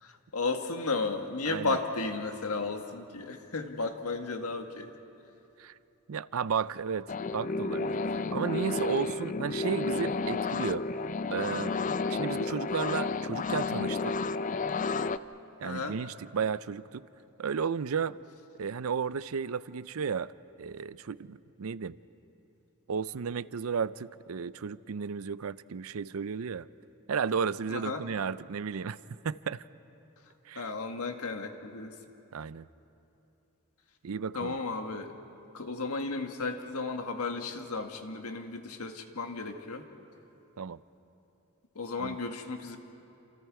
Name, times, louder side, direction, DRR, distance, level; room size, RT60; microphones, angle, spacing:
voice 1, 0.0-4.9 15.6-16.0 27.7-28.0 30.6-31.9 34.3-35.1 35.5-39.8 41.8-42.8, left 3 dB, 85° left, 5 dB, 1.7 m, -34 dB
voice 2, 1.5-1.8 5.6-5.7 6.1-10.9 11.3-11.7 12.1-14.2 15.6-17.1 17.4-18.2 18.6-20.3 20.6-22.0 22.9-26.7 27.1-29.0 29.2-29.6 30.5-30.7 32.3-32.7 34.0-34.6 40.6-40.8 42.0-42.2, right 6 dB, 70° right, 17 dB, 0.5 m, -33 dB
sound 1, 7.1-15.2, left 3 dB, 35° left, 0.4 m, -31 dB
28.5 x 27.5 x 4.8 m, 2.9 s
head